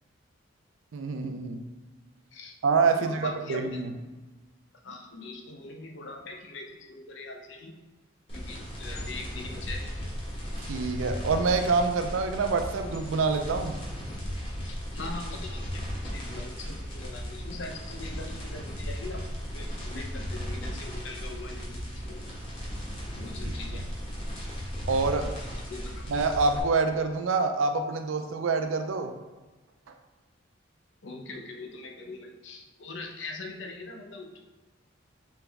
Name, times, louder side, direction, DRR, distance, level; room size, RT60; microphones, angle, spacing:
voice 1, 0.9-1.6 2.6-3.9 10.6-13.8 23.7-23.8 24.9-25.3 26.1-29.1, right 4 dB, 80° right, 6 dB, 0.4 m, -26 dB
voice 2, 3.0-3.8 4.8-7.7 8.3-10.1 14.6-22.2 23.2-23.8 25.4-26.2 31.0-34.4, left 3 dB, 65° left, 2 dB, 0.5 m, -42 dB
sound 1, 8.3-26.6, equal, 25° left, 0.9 m, -36 dB
3.5 x 3.0 x 3.4 m, 1.2 s
head